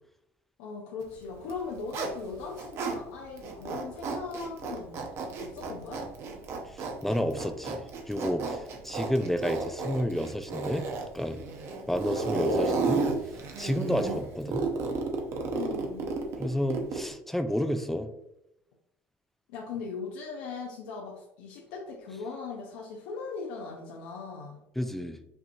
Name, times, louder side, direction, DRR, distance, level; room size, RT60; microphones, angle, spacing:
voice 1, 0.6-6.1 15.5-16.1 19.5-24.6, left 4 dB, 90° left, -1 dB, 0.7 m, -39 dB
Zipper (clothing), 1.4-3.0 3.4-17.1, right 3 dB, 55° right, 0.8 m, -32 dB
voice 2, 6.6-10.9 11.1-11.4 11.9-13.0 13.6-14.7 16.4-18.1 24.8-25.2, equal, 5° left, 8 dB, 0.3 m, -30 dB
5.5 x 2.8 x 2.7 m, 0.82 s
supercardioid pair, 110°, 5 cm